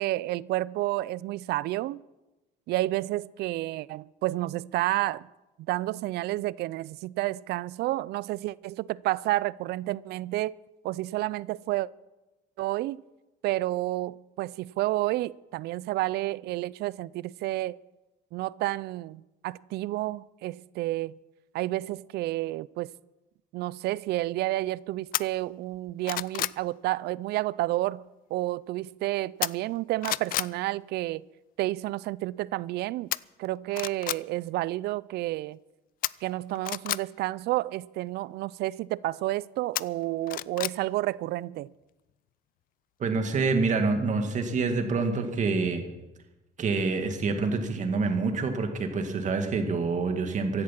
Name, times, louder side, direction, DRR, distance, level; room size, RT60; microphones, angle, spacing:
voice 1, 0.0-2.0 2.7-5.3 5.6-10.5 10.8-11.9 12.6-13.0 13.4-17.8 18.3-21.2 21.5-22.9 23.5-28.0 28.3-31.2 31.6-33.1 33.4-35.6 36.2-41.7, right 17 dB, 75° right, 0.4 m, -30 dB
sound 1, 25.1-25.2 25.7-26.6 29.4-29.8 30.0-30.5 33.1-33.2 33.7-34.2 36.0-37.0 39.7-40.8 41.1-41.2, left 14 dB, 55° left, 0.4 m, -30 dB
voice 2, 43.0-45.8 46.6-50.6, right 4 dB, 45° right, 2.1 m, -27 dB
16.0 x 11.5 x 5.9 m
cardioid pair, 110°, 17 cm